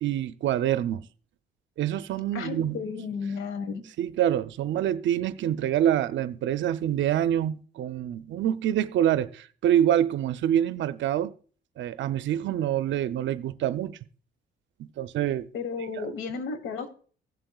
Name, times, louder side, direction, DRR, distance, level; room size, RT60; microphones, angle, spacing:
voice 1, 0.0-1.1 1.8-2.8 4.0-11.3 11.8-13.9 14.8-15.5, right 11 dB, 70° right, 0.6 m, -26 dB
voice 2, 2.3-3.8 15.5-16.9, left 5 dB, 90° left, 1.3 m, -33 dB
16.0 x 7.6 x 2.3 m
cardioid pair, 90°, 20 cm